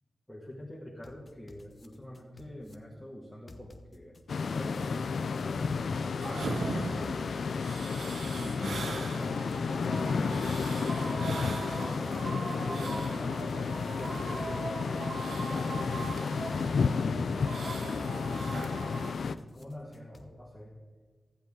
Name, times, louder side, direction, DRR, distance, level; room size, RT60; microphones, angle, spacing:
voice 1, 0.3-4.2 4.5-7.3 8.4-8.9 9.2-9.5 10.0-12.2 12.5-14.7 15.2-16.1 16.6-17.2 17.6-19.1 19.5-20.7, left 1 dB, 5° left, -5 dB, 1.7 m, -45 dB
sound 1, 1.0-2.7 3.5-4.2 4.6-6.3 7.0-7.8 8.1-9.9 10.6-11.3 11.7-13.4 14.1-14.9 15.3-16.9 17.7-18.4 18.8-20.3, left 2 dB, 50° left, 0.9 m, -53 dB
sound 2, 4.3-19.4, left 5 dB, 80° left, 0.4 m, -32 dB
sound 3, 6.2-19.1, right 3 dB, 90° right, 0.8 m, -40 dB
15.0 x 7.8 x 3.7 m, 1.5 s
cardioid pair, 65°, 0 cm